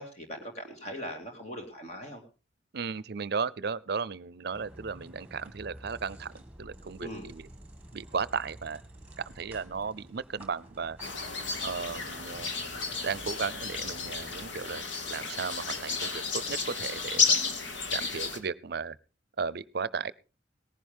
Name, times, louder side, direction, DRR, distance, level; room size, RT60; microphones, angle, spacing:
voice 1, 0.0-2.2 7.0-7.3, equal, 40° left, 4 dB, 2.4 m, -40 dB
voice 2, 2.7-7.5 7.9-8.8 9.2-11.0 11.6-12.5 13.0-17.4 17.9-19.0 19.4-20.1, right 5 dB, 60° right, 20 dB, 0.6 m, -35 dB
sound 1, 4.5-14.5, right 1 dB, 5° right, 2.0 m, -51 dB
sound 2, 11.0-18.4, left 5 dB, 90° left, 2.2 m, -32 dB
18.5 x 11.0 x 3.6 m, 0.34 s
head